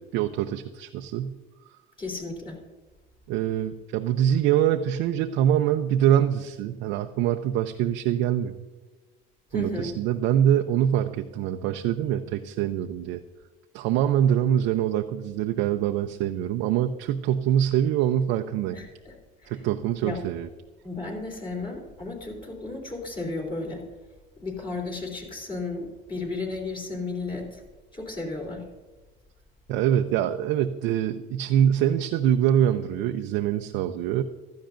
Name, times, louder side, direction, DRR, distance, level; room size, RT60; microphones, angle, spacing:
voice 1, 0.0-1.3 3.3-8.7 9.5-13.2 13.7-18.8 19.5-20.5 29.7-34.2, right 10 dB, 65° right, 5 dB, 0.6 m, -24 dB
voice 2, 2.0-2.6 9.5-9.9 18.7-19.2 19.4-19.6 20.0-20.2 20.8-23.8 24.4-27.6 27.9-28.6, left 3 dB, 25° left, 0 dB, 3.3 m, -34 dB
16.0 x 13.0 x 2.6 m, 1.2 s
cardioid pair, 125°, 20 cm